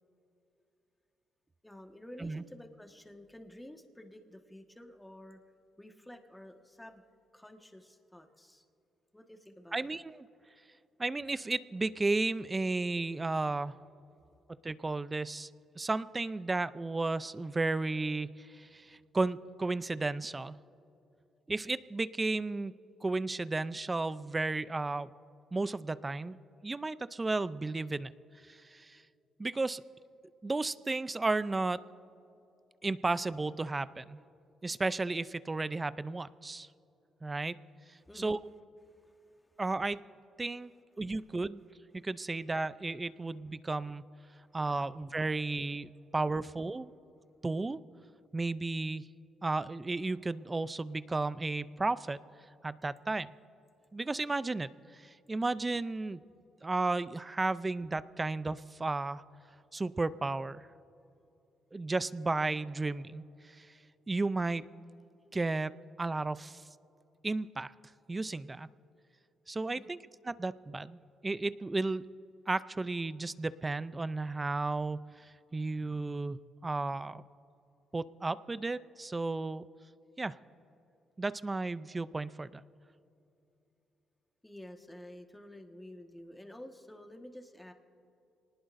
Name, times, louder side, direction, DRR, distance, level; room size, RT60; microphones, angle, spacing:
voice 1, 1.6-5.4 5.8-7.0 7.3-8.7 9.1-10.0 38.0-38.4 38.9-39.6 44.4-44.5 69.6-69.9 84.4-87.7, left 1 dB, 10° left, 4 dB, 1.5 m, -51 dB
voice 2, 9.7-10.3 11.0-13.7 14.6-15.5 15.8-20.6 21.5-22.7 23.0-25.1 25.5-26.4 26.6-28.1 28.5-29.0 29.4-29.8 30.4-31.8 32.8-34.2 34.6-36.7 37.2-37.6 37.9-38.4 39.6-40.0 40.4-40.7 41.0-41.6 41.9-44.0 44.5-46.9 47.4-47.8 48.3-49.1 49.4-52.2 52.6-53.3 53.9-56.2 56.6-59.2 59.7-60.7 61.7-63.7 64.1-64.6 65.3-66.6 67.2-67.7 68.1-68.7 69.5-70.0 70.2-72.0 72.5-77.2 77.9-79.7 80.2-80.4 81.2-82.6, right 3 dB, 20° right, 16 dB, 0.5 m, -33 dB
25.5 x 19.5 x 2.6 m, 2.8 s
cardioid pair, 90°, 0 cm